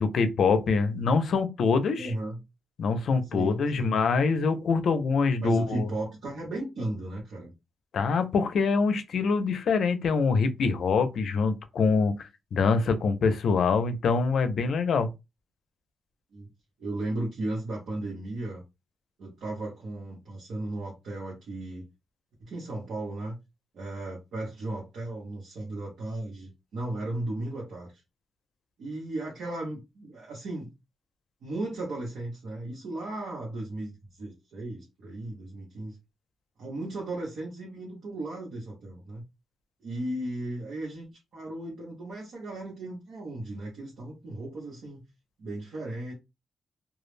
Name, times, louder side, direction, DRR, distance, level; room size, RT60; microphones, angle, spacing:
voice 1, 0.0-2.1 2.8-5.9 7.9-15.1, left 4 dB, 70° left, 0.4 m, -25 dB
voice 2, 2.0-2.4 3.3-4.0 5.4-7.5 16.3-16.5 16.8-18.6 19.2-21.9 22.4-23.4 23.7-27.9 28.8-30.7 31.4-36.0 36.6-39.2 39.8-41.1 41.3-45.1 45.4-46.1, right 2 dB, 80° right, 0.9 m, -35 dB
2.2 x 2.0 x 3.1 m
cardioid pair, 85°, 0 cm